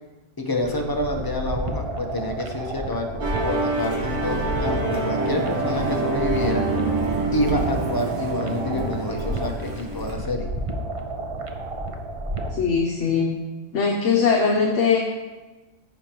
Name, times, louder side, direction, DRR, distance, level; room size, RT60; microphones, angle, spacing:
voice 1, 0.4-6.6 7.3-10.5, left 1 dB, 20° left, 2 dB, 0.8 m, -28 dB
sound 1, 0.6-12.6, right 1 dB, 35° right, 0.5 m, -31 dB
Musical instrument, 3.2-10.1, right 2 dB, 80° right, 1.8 m, -26 dB
voice 2, 12.5-13.3 13.7-15.0, left 5 dB, 70° left, 0 dB, 1.1 m, -20 dB
14.0 x 5.1 x 3.0 m, 1.2 s
omnidirectional pair, 1.3 m